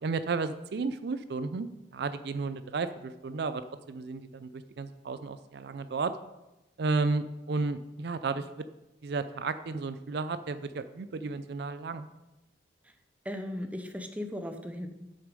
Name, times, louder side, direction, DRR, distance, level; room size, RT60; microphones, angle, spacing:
voice 1, 0.0-6.1 6.8-8.6 9.0-12.1, right 4 dB, 65° right, 12 dB, 0.4 m, -33 dB
voice 2, 13.2-14.9, left 1 dB, 10° right, 6 dB, 0.8 m, -37 dB
8.1 x 6.5 x 5.3 m, 1.0 s
head